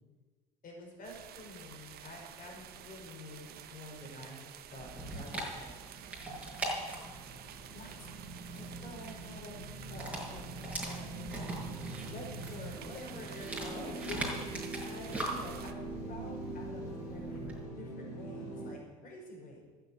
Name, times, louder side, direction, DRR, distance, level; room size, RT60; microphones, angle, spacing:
voice 1, 0.6-5.7 6.2-6.4 6.6-7.1 7.7-8.1 8.5-9.6 9.9-10.6 10.8-11.5 12.0-17.4 17.8-19.6, left 1 dB, 45° left, 0 dB, 5.6 m, -48 dB
sound 1, 1.0-15.7, right 10 dB, 55° right, 1.1 m, -51 dB
Dog, 4.8-17.6, right 1 dB, 5° right, 5.8 m, -42 dB
sound 2, 5.7-18.7, right 2 dB, 85° left, 3.4 m, -44 dB
12.0 x 8.6 x 9.5 m, 1.4 s
hypercardioid pair, 65°, 19 cm